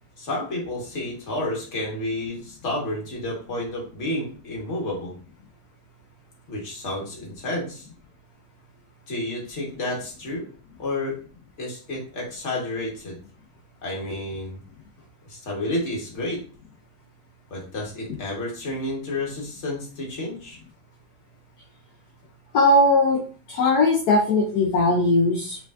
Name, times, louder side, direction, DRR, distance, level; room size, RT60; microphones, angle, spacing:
voice 1, 0.2-5.1 6.5-7.9 9.1-10.4 10.8-11.2 11.6-13.2 13.8-14.6 15.3-16.4 17.5-20.6, left 1 dB, 40° left, -2 dB, 1.5 m, -30 dB
voice 2, 22.5-23.2 23.5-25.6, left 2 dB, 65° left, 0 dB, 1.1 m, -19 dB
4.9 x 3.2 x 2.5 m, 0.40 s
omnidirectional pair, 2.0 m